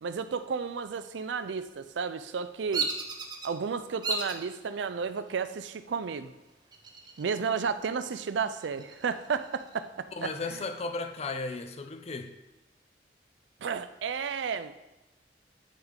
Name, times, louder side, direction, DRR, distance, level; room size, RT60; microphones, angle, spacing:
voice 1, 0.0-2.9 3.4-6.3 7.2-10.3 13.6-14.7, right 5 dB, 80° right, 0.4 m, -32 dB
Bird vocalization bird call bird song, 2.7-3.5 4.0-4.4 5.0-5.5 6.7-7.5 7.8-7.9 8.4-9.8, right 4 dB, 25° right, 0.6 m, -34 dB
voice 2, 10.1-12.4, left 3 dB, 35° left, 0.4 m, -35 dB
10.5 x 3.7 x 3.6 m
head